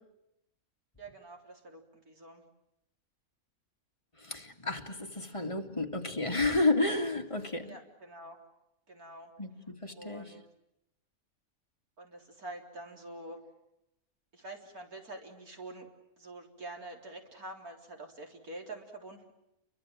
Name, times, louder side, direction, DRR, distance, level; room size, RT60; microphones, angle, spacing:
voice 1, 1.0-2.4 7.6-8.4 8.9-9.3 9.6-10.4 12.0-13.4 14.3-15.9 16.2-19.3, right 2 dB, 85° right, 2 dB, 4.3 m, -46 dB
voice 2, 4.2-7.7 9.4-9.5 9.8-10.2, left 2 dB, 20° left, 2 dB, 2.4 m, -31 dB
29.5 x 24.0 x 7.6 m, 0.85 s
omnidirectional pair, 1.5 m